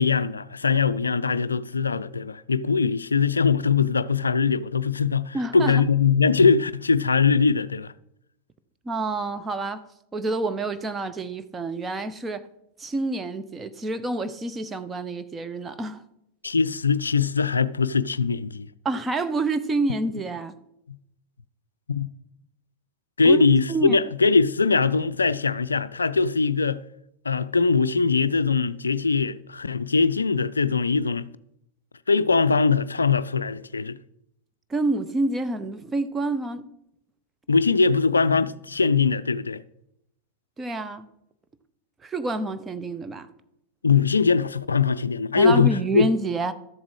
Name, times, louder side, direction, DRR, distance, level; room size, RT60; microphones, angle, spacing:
voice 1, 0.0-7.9 16.4-18.7 21.9-22.1 23.2-26.8 27.2-31.3 32.1-34.0 37.5-39.6 43.8-46.1, left 5 dB, 75° left, 0.4 m, -21 dB
voice 2, 5.3-5.8 8.8-12.5 12.8-16.0 18.8-20.5 23.2-23.4 23.7-24.0 34.7-36.6 40.6-41.1 42.0-43.3 45.4-46.5, right 2 dB, 15° right, 0.8 m, -28 dB
13.0 x 7.3 x 4.8 m
figure-of-eight pair, 90°, 0 cm